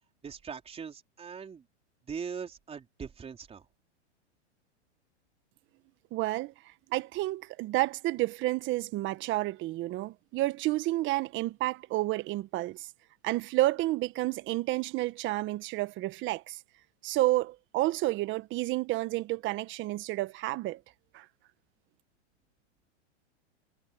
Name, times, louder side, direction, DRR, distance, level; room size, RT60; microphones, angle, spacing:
voice 1, 0.2-1.6 2.1-3.6, right 6 dB, 15° right, 4.2 m, -41 dB
voice 2, 6.1-6.5 6.9-12.9 13.2-16.6 17.0-20.8 21.1-21.2, right 17 dB, 35° right, 1.4 m, -30 dB
hypercardioid pair, 130°, 35 cm